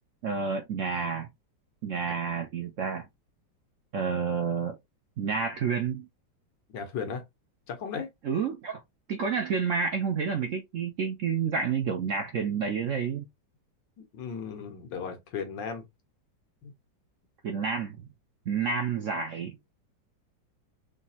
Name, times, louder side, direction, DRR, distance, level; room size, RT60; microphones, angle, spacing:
voice 1, 0.2-1.3 1.8-3.0 3.9-4.8 5.2-6.1 8.2-8.8 9.1-13.3 17.4-18.0 18.5-19.6, right 6 dB, 65° right, 0.8 m, -29 dB
voice 2, 6.7-7.2 7.7-8.1 14.1-15.9 16.6-16.7, left 6 dB, 75° left, 1.7 m, -36 dB
5.1 x 2.8 x 2.7 m
omnidirectional pair, 2.0 m